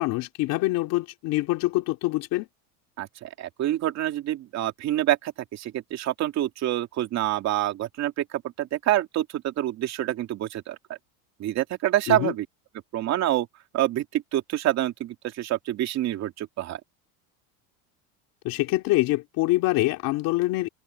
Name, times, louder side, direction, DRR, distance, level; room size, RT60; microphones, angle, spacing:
voice 1, 0.0-2.5 12.1-12.3 18.4-20.7, left 19 dB, 50° left, 3.1 m, -25 dB
voice 2, 3.0-10.8 11.4-12.5 12.9-13.5 13.7-16.8, right 13 dB, 35° right, 2.8 m, -27 dB
cardioid pair, 160°, 43 cm